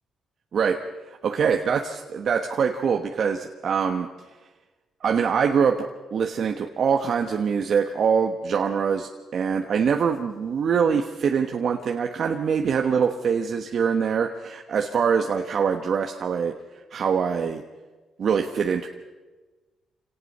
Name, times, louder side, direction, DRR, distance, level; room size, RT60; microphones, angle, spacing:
voice 1, 1.2-4.1 5.0-16.5 16.9-17.6 18.2-18.9, right 6 dB, 55° right, 3 dB, 1.3 m, -24 dB
26.5 x 18.0 x 5.6 m, 1.2 s
cardioid pair, 90°, 0 cm